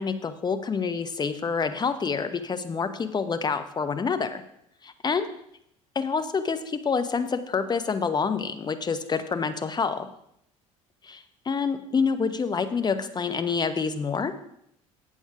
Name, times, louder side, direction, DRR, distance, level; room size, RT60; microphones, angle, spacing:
voice 1, 0.0-4.4 4.8-5.3 5.9-10.1 11.0-14.3, left 5 dB, 25° left, 10 dB, 0.9 m, -27 dB
8.1 x 7.3 x 4.8 m, 0.75 s
hypercardioid pair, 65°, 17 cm